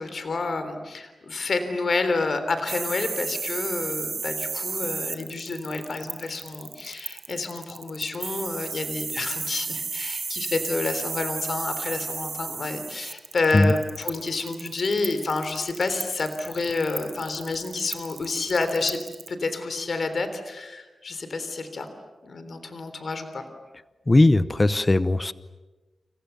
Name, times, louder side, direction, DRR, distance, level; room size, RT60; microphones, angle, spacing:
voice 1, 0.0-19.0 19.3-21.9 22.2-23.5, left 3 dB, 50° left, 9 dB, 3.5 m, -29 dB
sound 1, 2.7-19.3, right 5 dB, 50° right, 1.3 m, -33 dB
voice 2, 24.1-25.3, left 2 dB, 20° left, 14 dB, 0.9 m, -18 dB
29.5 x 29.0 x 7.0 m, 1.2 s
wide cardioid pair, 155°, 0 cm